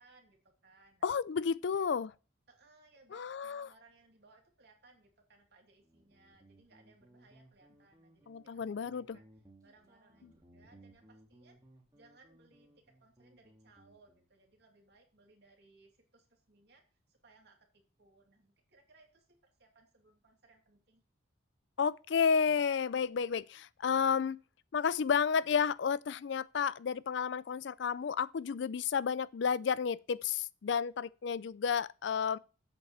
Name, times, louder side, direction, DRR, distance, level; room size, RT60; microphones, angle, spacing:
voice 1, 0.0-1.1 1.6-1.8 2.5-8.7 9.1-9.3 9.6-11.6 11.9-21.0, right 3 dB, 55° right, 2.6 m, -65 dB
voice 2, 1.0-2.1 3.1-3.7 8.3-9.2 10.2-10.3 21.8-24.4 24.7-32.4, left 6 dB, 60° left, 0.4 m, -31 dB
Guitar, 5.8-14.3, right 1 dB, 20° right, 1.9 m, -62 dB
8.1 x 5.1 x 7.3 m
head